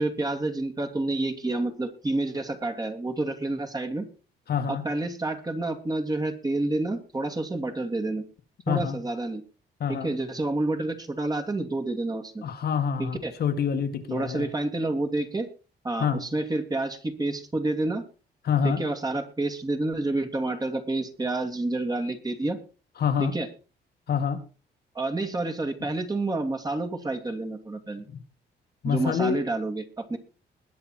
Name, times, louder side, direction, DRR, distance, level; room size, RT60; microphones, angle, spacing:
voice 1, 0.0-4.1 4.7-8.2 8.7-9.4 9.9-12.4 13.0-13.3 14.1-15.5 15.8-18.0 18.6-22.6 23.2-23.5 24.9-28.0 28.8-30.2, right 2 dB, 20° right, 5 dB, 2.6 m, -29 dB
voice 2, 4.5-4.8 8.7-9.0 9.8-10.1 12.4-14.5 16.0-16.2 18.4-18.8 23.0-23.3 24.1-24.4 28.8-29.4, left 7 dB, 60° left, 6 dB, 2.0 m, -26 dB
21.0 x 6.9 x 4.5 m, 0.34 s
cardioid pair, 100°, 18 cm